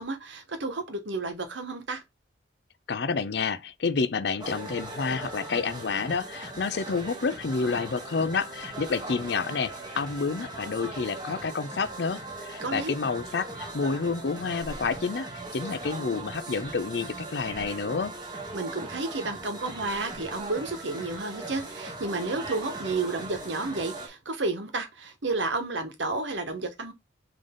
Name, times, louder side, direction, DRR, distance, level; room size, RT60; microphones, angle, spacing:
voice 1, 0.0-2.0 12.6-13.0 18.5-26.9, right 3 dB, 85° right, 1.2 m, -31 dB
voice 2, 2.9-18.1, left 4 dB, 65° left, 0.5 m, -29 dB
sound 1, 4.4-24.1, right 2 dB, 25° right, 1.1 m, -39 dB
3.9 x 3.4 x 3.7 m
head